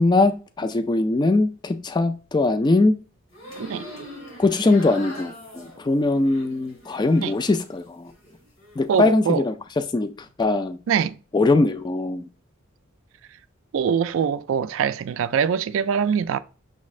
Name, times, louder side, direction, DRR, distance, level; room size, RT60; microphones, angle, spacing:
voice 1, 0.0-2.9 4.4-8.1 8.8-9.5 9.9-10.8 11.3-12.3, left 2 dB, 20° left, 0.3 m, -21 dB
sound 1, 3.3-7.7 8.1-8.8, left 1 dB, 70° left, 2.5 m, -42 dB
voice 2, 8.9-9.4 10.9-11.2 13.7-16.4, right 7 dB, 65° right, 0.3 m, -23 dB
6.2 x 3.1 x 2.4 m
head